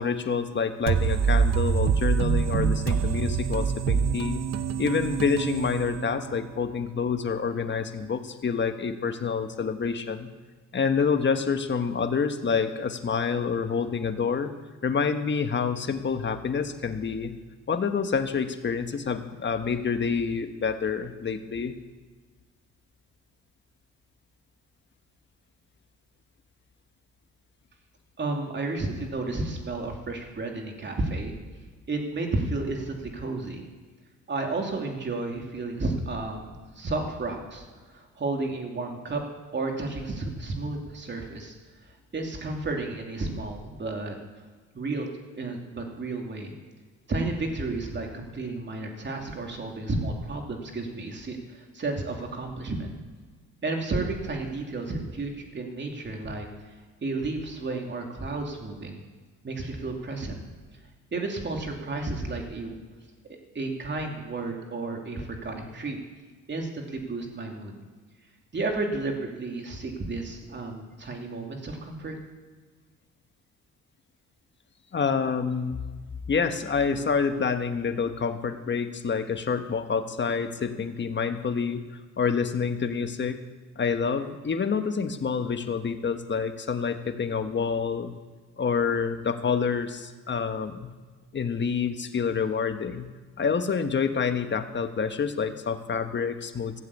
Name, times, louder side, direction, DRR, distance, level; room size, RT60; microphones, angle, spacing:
voice 1, 0.0-4.4 4.8-10.3 10.7-14.5 14.8-17.3 17.7-21.7 74.9-75.8 76.3-83.4 83.8-88.1 88.6-90.9 91.3-93.1 93.4-96.8, left 5 dB, 40° left, 8 dB, 1.3 m, -27 dB
sound 1, 0.9-6.5, right 6 dB, 60° right, 1.0 m, -25 dB
voice 2, 28.2-31.3 31.9-33.6 34.3-39.2 39.5-41.5 42.1-44.2 44.7-45.1 45.4-46.5 47.1-52.9 53.6-56.5 57.0-59.0 59.4-60.4 61.1-62.8 63.5-66.0 66.5-67.8 68.5-72.1, right 2 dB, 35° right, 2 dB, 3.0 m, -32 dB
15.5 x 7.5 x 8.5 m, 1.4 s
cardioid pair, 90°, 30 cm